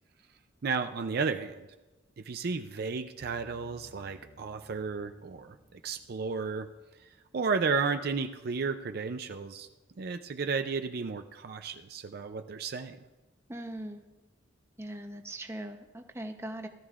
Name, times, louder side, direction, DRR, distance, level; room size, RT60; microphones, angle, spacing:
voice 1, 0.6-1.7 2.2-6.7 7.0-9.7 10.0-13.0, right 5 dB, 55° right, 8 dB, 0.5 m, -33 dB
sound 1, 3.2-8.3, right 1 dB, 35° right, 1.8 m, -60 dB
voice 2, 13.5-14.1 14.8-16.7, right 1 dB, 15° right, 5 dB, 0.7 m, -40 dB
17.5 x 12.5 x 2.5 m, 1.1 s
head